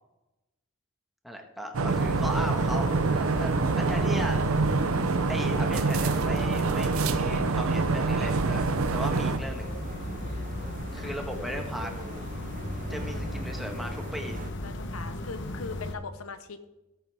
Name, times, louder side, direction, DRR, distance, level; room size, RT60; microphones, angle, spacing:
voice 1, 1.2-4.4 5.3-9.7 10.9-11.9 12.9-14.4, equal, ahead, 2 dB, 1.5 m, -37 dB
sound 1, 1.7-9.4, right 3 dB, 80° right, 0.7 m, -26 dB
sound 2, 1.9-16.0, left 1 dB, 55° left, 1.1 m, -37 dB
sound 3, 8.6-14.5, right 2 dB, 40° right, 0.6 m, -42 dB
voice 2, 14.6-16.7, left 4 dB, 85° left, 10 dB, 1.1 m, -40 dB
17.0 x 8.9 x 3.5 m, 1.0 s
head